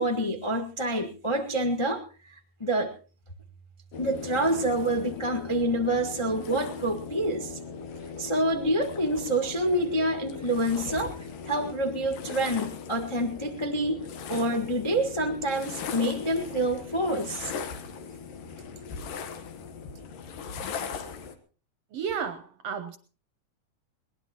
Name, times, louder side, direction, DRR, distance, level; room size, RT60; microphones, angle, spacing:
voice 1, 0.0-2.9 4.0-7.6 8.2-11.1 11.4-14.0 14.3-17.5, right 1 dB, 25° left, 4 dB, 0.6 m, -27 dB
sound 1, 3.9-21.3, left 6 dB, 85° left, 3.0 m, -39 dB
voice 2, 21.9-23.0, right 7 dB, 65° right, 10 dB, 1.7 m, -32 dB
22.0 x 19.0 x 3.0 m, 0.37 s
omnidirectional pair, 3.8 m